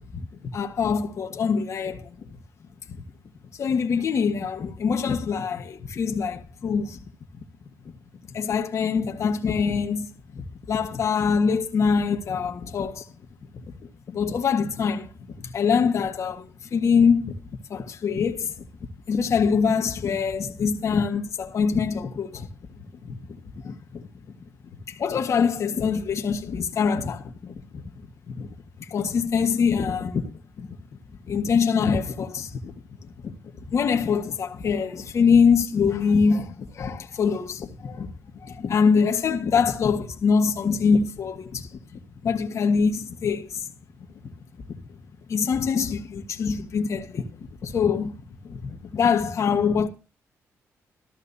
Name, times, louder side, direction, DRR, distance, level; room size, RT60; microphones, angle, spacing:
voice 1, 0.5-2.1 3.6-7.0 8.3-10.1 10.3-13.1 13.5-13.6 14.1-15.1 15.4-17.4 17.7-18.5 19.1-22.5 23.0-23.2 23.6-24.1 24.9-27.8 28.3-28.5 28.8-30.3 30.6-30.7 31.3-32.7 33.2-33.3 33.7-43.7 45.3-47.3 47.6-48.2 48.4-49.9, left 6 dB, 55° left, 1.5 m, -24 dB
13.5 x 13.0 x 2.8 m
cardioid pair, 90°, 6 cm